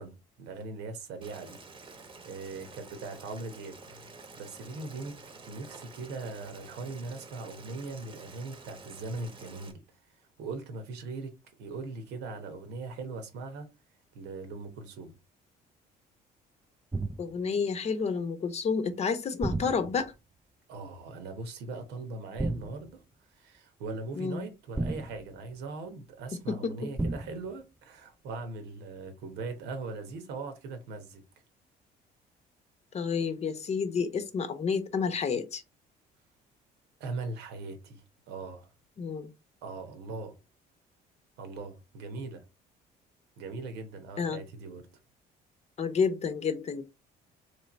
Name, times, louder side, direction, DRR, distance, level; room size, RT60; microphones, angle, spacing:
voice 1, 0.0-1.6 1.9-3.8 4.4-5.2 5.5-9.8 10.4-11.3 11.6-13.7 14.1-15.1 20.7-23.0 23.3-31.2 37.0-38.7 39.6-40.3 41.4-42.4 43.4-44.8, right 3 dB, 85° right, 1.1 m, -40 dB
Boiling, 1.2-9.7, right 3 dB, 30° right, 1.0 m, -49 dB
sound 1, 16.9-17.4 19.4-20.2 22.4-22.9 24.7-25.6 27.0-27.5, right 2 dB, 10° right, 0.4 m, -33 dB
voice 2, 17.2-20.1 24.1-24.5 26.5-26.9 32.9-35.6 39.0-39.3 44.2-44.4 45.8-46.8, left 5 dB, 40° left, 0.8 m, -30 dB
3.3 x 3.2 x 4.1 m
cardioid pair, 110°, 17 cm